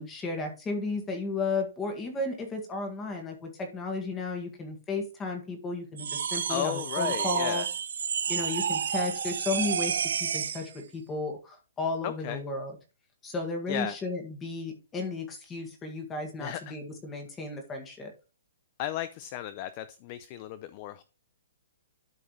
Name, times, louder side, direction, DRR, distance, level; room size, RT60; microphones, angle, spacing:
voice 1, 0.0-7.7 8.3-12.7 13.2-18.1, left 3 dB, 10° left, 3 dB, 1.8 m, -34 dB
sound 1, 6.0-10.7, right 7 dB, 70° right, 0.7 m, -30 dB
voice 2, 6.5-7.7 12.0-12.4 13.7-14.0 16.4-16.7 18.8-21.0, left 12 dB, 30° left, 14 dB, 0.4 m, -34 dB
12.0 x 4.9 x 3.2 m, 0.33 s
hypercardioid pair, 165°, 0 cm